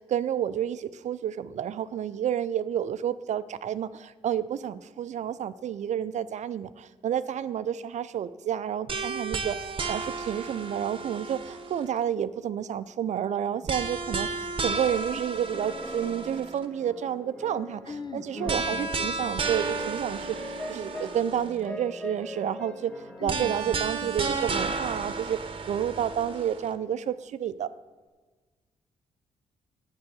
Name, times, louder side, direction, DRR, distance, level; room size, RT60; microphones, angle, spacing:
voice 1, 0.0-25.4 25.7-27.7, right 9 dB, 60° right, 14 dB, 0.5 m, -30 dB
sound 1, 8.9-12.0 13.7-16.7 18.5-21.6 23.3-26.7, right 4 dB, 40° right, 1.0 m, -33 dB
sound 2, 15.3-23.6, left 1 dB, 10° left, 1.2 m, -41 dB
voice 2, 17.9-19.3 23.2-24.1, left 4 dB, 35° left, 14 dB, 0.7 m, -41 dB
7.7 x 7.5 x 6.9 m, 1.3 s
supercardioid pair, 55°, 13 cm